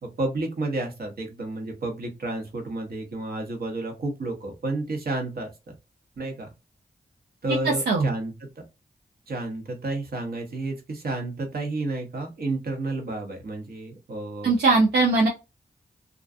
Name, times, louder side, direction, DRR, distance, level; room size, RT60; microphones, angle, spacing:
voice 1, 0.0-5.7 6.2-6.5 7.4-8.3 9.3-14.5, right 2 dB, 70° right, 3 dB, 0.9 m, -31 dB
voice 2, 7.5-8.1 14.4-15.3, right 3 dB, 90° right, 0 dB, 0.4 m, -20 dB
2.4 x 2.2 x 2.5 m, 0.26 s
cardioid pair, 40°, 17 cm